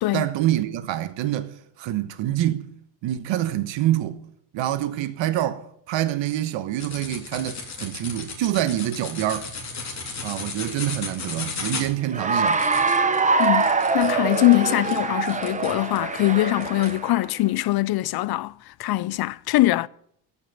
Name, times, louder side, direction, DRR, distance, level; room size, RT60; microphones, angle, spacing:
voice 1, 0.1-2.7 3.0-4.2 4.5-9.5 10.2-12.6, right 13 dB, 80° right, 1.3 m, -26 dB
sound 1, 6.8-16.1 16.6-16.9, left 4 dB, 40° left, 3.5 m, -35 dB
Cheering / Applause, 12.1-17.3, right 4 dB, 15° right, 0.8 m, -24 dB
voice 2, 13.4-19.9, left 17 dB, 60° left, 0.5 m, -22 dB
15.5 x 6.1 x 8.9 m
cardioid pair, 130°, 44 cm